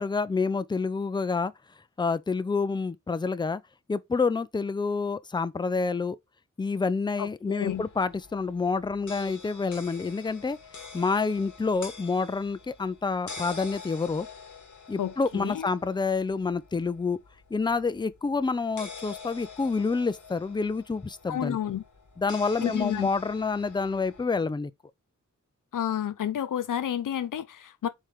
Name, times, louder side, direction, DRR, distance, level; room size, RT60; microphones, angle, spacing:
voice 1, 0.0-1.5 2.0-3.6 3.9-6.2 6.6-10.6 10.9-14.3 14.9-17.2 17.5-21.6 22.2-24.7, left 4 dB, 15° left, 0.3 m, -28 dB
voice 2, 7.2-7.9 15.0-15.7 21.3-21.8 22.6-23.1 25.7-27.9, left 10 dB, 85° left, 0.5 m, -30 dB
sound 1, 7.6-24.3, left 4 dB, 70° left, 1.2 m, -46 dB
4.3 x 3.2 x 3.6 m
wide cardioid pair, 85°, 31 cm